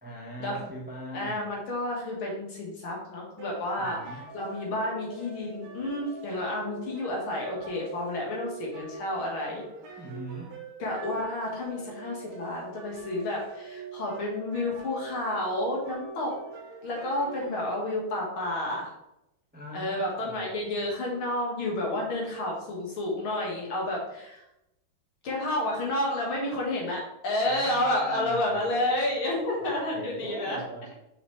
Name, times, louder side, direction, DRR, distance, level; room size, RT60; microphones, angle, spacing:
voice 1, 0.0-1.5 3.7-4.3 10.0-10.6 19.5-20.8 27.4-29.0 29.6-30.9, right 1 dB, 5° right, -3 dB, 1.0 m, -41 dB
voice 2, 1.1-9.6 10.8-16.4 16.8-18.9 19.7-24.4 25.2-30.6, left 1 dB, 75° left, -2 dB, 2.4 m, -30 dB
sound 1, 3.4-17.6, right 4 dB, 80° right, 1.7 m, -43 dB
6.1 x 5.1 x 3.3 m, 0.86 s
omnidirectional pair, 2.3 m